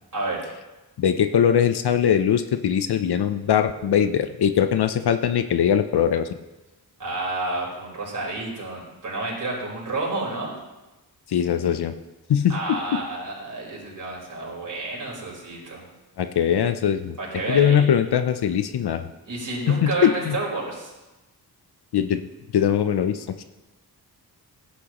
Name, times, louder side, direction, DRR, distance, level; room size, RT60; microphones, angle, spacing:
voice 1, 0.1-0.4 7.0-10.5 12.5-15.9 17.2-17.9 19.2-20.9, right 2 dB, 50° right, -4 dB, 4.5 m, -30 dB
voice 2, 1.0-6.3 11.3-11.9 12.3-13.0 16.2-17.2 17.5-19.0 19.7-20.4 21.9-22.3 22.5-23.4, left 8 dB, 75° left, 9 dB, 0.6 m, -21 dB
16.5 x 10.5 x 3.0 m, 1.1 s
wide cardioid pair, 130°, 39 cm